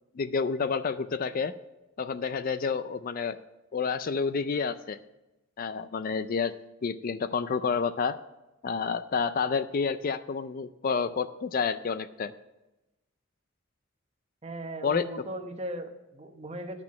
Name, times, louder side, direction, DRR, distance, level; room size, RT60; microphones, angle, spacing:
voice 1, 0.1-1.5 2.0-3.4 3.7-5.0 5.6-6.5 6.8-8.2 8.6-12.3 14.8-15.0, left 5 dB, 45° left, 12 dB, 0.4 m, -29 dB
voice 2, 14.4-16.8, right 1 dB, 30° right, 5 dB, 1.0 m, -38 dB
10.5 x 6.0 x 7.4 m, 0.99 s
head